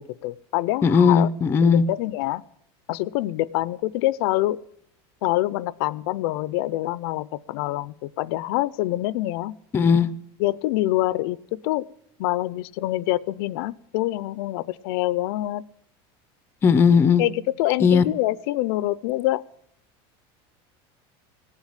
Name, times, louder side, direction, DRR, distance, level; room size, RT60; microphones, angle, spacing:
voice 1, 0.0-1.3 1.6-2.4 2.9-4.6 5.2-9.5 10.4-11.9 12.2-15.6 17.2-19.4, left 16 dB, 65° left, 18 dB, 0.5 m, -25 dB
voice 2, 0.8-1.8 9.7-10.1 16.6-17.2 17.8-18.0, left 6 dB, 15° left, 14 dB, 0.5 m, -17 dB
18.0 x 7.4 x 8.9 m, 0.70 s
cardioid pair, 170°, 13 cm